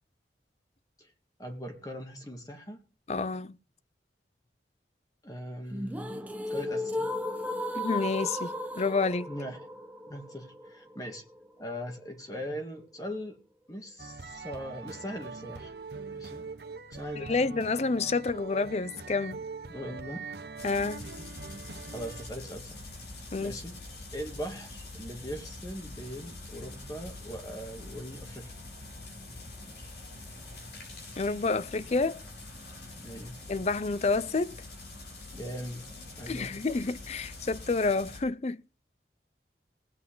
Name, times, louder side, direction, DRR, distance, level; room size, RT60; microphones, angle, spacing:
voice 1, 1.4-2.8 5.2-7.1 9.3-9.7 10.1-11.2 11.6-13.4 13.7-15.7 16.1-16.4 16.9-17.5 19.7-20.3 21.9-22.8 23.4-23.8 24.1-28.5 33.0-33.4 35.3-35.9 36.2-36.6, equal, 20° left, 1.9 m, -40 dB
voice 2, 3.1-3.6 7.7-9.3 17.2-19.4 20.6-21.0 23.3-23.6 31.2-32.2 33.5-34.5 36.3-38.6, left 3 dB, 35° left, 0.5 m, -29 dB
sound 1, 5.7-11.7, left 1 dB, 10° right, 0.9 m, -35 dB
sound 2, 14.0-22.3, right 4 dB, 70° right, 1.1 m, -43 dB
sound 3, 20.6-38.2, left 2 dB, 75° left, 7.5 m, -45 dB
19.0 x 8.5 x 3.9 m
head